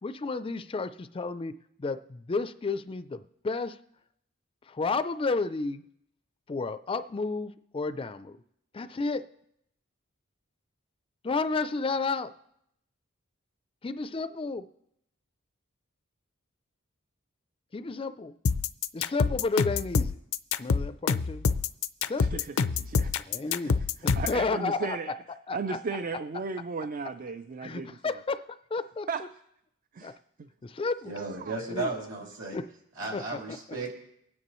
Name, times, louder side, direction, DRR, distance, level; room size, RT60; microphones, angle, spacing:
voice 1, 0.0-3.8 4.7-5.8 6.5-8.4 8.7-9.3 11.2-12.3 13.8-14.7 17.7-18.3 18.9-20.2 20.6-21.5 22.0-22.4 23.3-25.0 25.5-25.8 27.6-28.4 28.7-29.1 30.0-30.1 30.6-31.2 31.7-31.9 32.5-32.6 33.1-33.6, left 3 dB, 25° left, 12 dB, 0.4 m, -32 dB
sound 1, 18.5-24.4, left 5 dB, 85° left, 0.5 m, -26 dB
voice 2, 22.2-23.1 23.6-25.1 25.5-28.0 29.1-29.2 29.9-30.5 31.2-31.6, right 4 dB, 40° right, 10 dB, 0.4 m, -36 dB
voice 3, 31.0-32.6 33.0-33.9, right 3 dB, 65° right, -1 dB, 3.5 m, -34 dB
24.0 x 9.7 x 3.1 m, 0.77 s
head